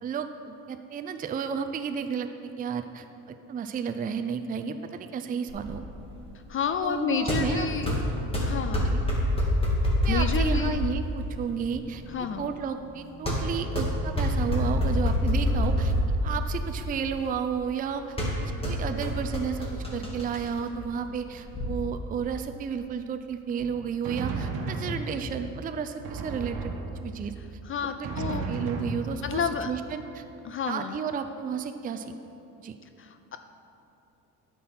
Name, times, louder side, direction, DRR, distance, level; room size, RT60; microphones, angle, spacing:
voice 1, 0.0-5.8 6.8-8.0 10.0-12.0 12.4-15.9 16.2-26.7 27.0-27.3 27.8-28.1 28.5-30.2 30.6-32.1 32.6-32.8, right 7 dB, 20° right, 8 dB, 0.5 m, -32 dB
sound 1, 5.5-21.7, equal, 15° left, 2.2 m, -28 dB
voice 2, 6.5-7.9 8.4-9.0 10.1-10.9 12.1-12.5 27.7-28.5 29.2-29.7 30.4-31.0 33.0-33.4, left 7 dB, 35° left, 9 dB, 0.4 m, -30 dB
Drum, 23.6-25.5 26.0-27.4 28.0-29.6, right 3 dB, 60° right, 1.3 m, -34 dB
9.2 x 6.2 x 5.8 m, 2.8 s
supercardioid pair, 85°, 39 cm